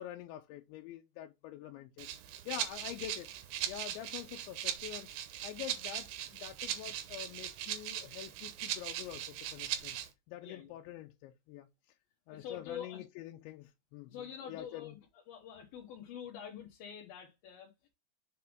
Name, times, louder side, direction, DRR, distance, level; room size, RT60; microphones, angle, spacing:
voice 1, 0.0-2.1 2.5-3.3 3.7-5.1 5.4-10.0 10.3-11.7 12.3-15.0, left 13 dB, 90° left, 3.0 m, -46 dB
Rattle (instrument), 2.0-10.1, right 11 dB, 85° right, 3.2 m, -40 dB
voice 2, 10.4-10.7 12.3-13.0 14.1-15.0 15.3-17.9, left 8 dB, 65° left, 2.7 m, -46 dB
7.1 x 4.6 x 3.6 m
omnidirectional pair, 5.2 m